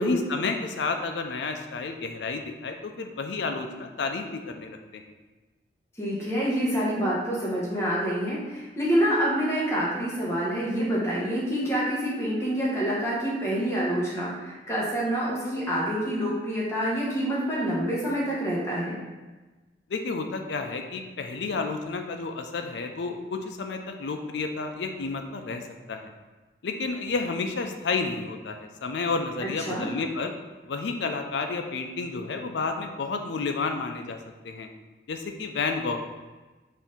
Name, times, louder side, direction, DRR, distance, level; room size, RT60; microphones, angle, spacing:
voice 1, 0.0-5.0 19.9-26.1 26.6-30.3 30.6-34.2 34.4-34.7 35.1-36.0, left 4 dB, 70° left, 5 dB, 0.4 m, -31 dB
voice 2, 6.0-19.0 29.7-29.9, equal, 15° left, -7 dB, 1.0 m, -27 dB
4.4 x 2.6 x 3.6 m, 1.2 s
head